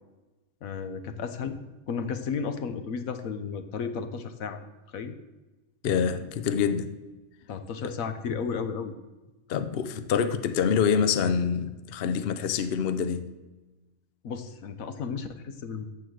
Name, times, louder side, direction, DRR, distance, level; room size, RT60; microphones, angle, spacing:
voice 1, 0.6-1.6 1.9-4.6 4.9-5.1 7.5-8.9 14.2-15.9, left 6 dB, 80° left, 1.3 m, -33 dB
voice 2, 5.8-6.9 7.8-7.9 9.5-13.2, left 7 dB, 55° left, 0.8 m, -26 dB
14.0 x 4.9 x 7.8 m
omnidirectional pair, 1.4 m